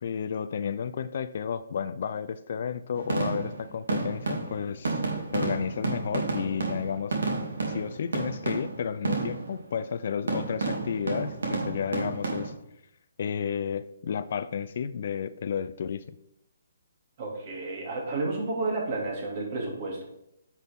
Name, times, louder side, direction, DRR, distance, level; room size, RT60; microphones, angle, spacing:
voice 1, 0.0-5.0 5.3-7.2 7.7-12.5 13.2-16.1, left 7 dB, 50° left, 13 dB, 0.4 m, -32 dB
sound 1, 2.9-9.6 10.3-12.5, right 3 dB, 85° right, 2.5 m, -31 dB
voice 2, 17.2-20.1, right 3 dB, 40° right, -1 dB, 2.6 m, -31 dB
9.8 x 5.8 x 3.6 m, 0.82 s
hypercardioid pair, 165°, 0 cm